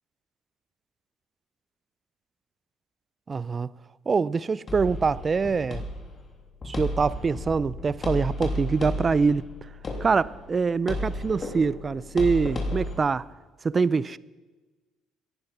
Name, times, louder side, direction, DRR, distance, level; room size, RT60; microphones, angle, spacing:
voice 1, 3.3-3.7 4.1-5.8 6.7-9.5 10.0-13.3 13.6-14.2, right 5 dB, 35° right, 0.4 m, -24 dB
sound 1, 4.7-12.9, left 1 dB, 35° left, 3.1 m, -33 dB
16.5 x 10.5 x 5.7 m
supercardioid pair, 75°, 0 cm